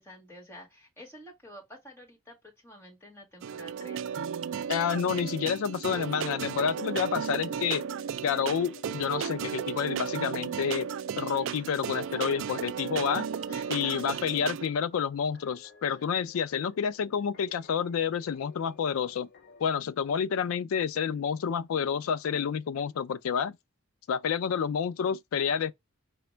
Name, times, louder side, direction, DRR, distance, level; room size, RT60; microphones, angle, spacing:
voice 1, 0.0-4.2 13.5-14.5 15.9-16.0, equal, 10° left, 1.7 m, -49 dB
sound 1, 3.4-14.7, right 7 dB, 65° right, 0.3 m, -34 dB
voice 2, 4.7-7.9 8.2-10.9 11.2-13.3 13.7-19.3 19.6-23.6 24.1-25.7, left 7 dB, 75° left, 0.3 m, -29 dB
sound 2, 6.1-19.7, left 4 dB, 50° left, 0.7 m, -55 dB
5.0 x 2.2 x 4.3 m
head